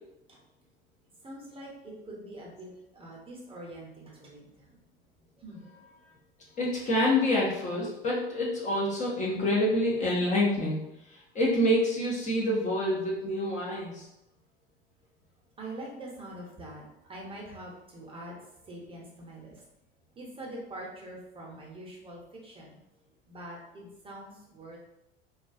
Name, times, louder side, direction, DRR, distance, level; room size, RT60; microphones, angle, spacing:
voice 1, 1.2-4.5 5.4-5.7 15.6-16.8 17.1-18.4 18.6-19.6 20.2-22.8 23.3-24.8, right 1 dB, 15° right, -3 dB, 0.7 m, -44 dB
voice 2, 6.6-14.1, left 1 dB, 25° left, -5 dB, 0.5 m, -27 dB
2.3 x 2.2 x 2.4 m, 0.89 s
figure-of-eight pair, 75°, 31 cm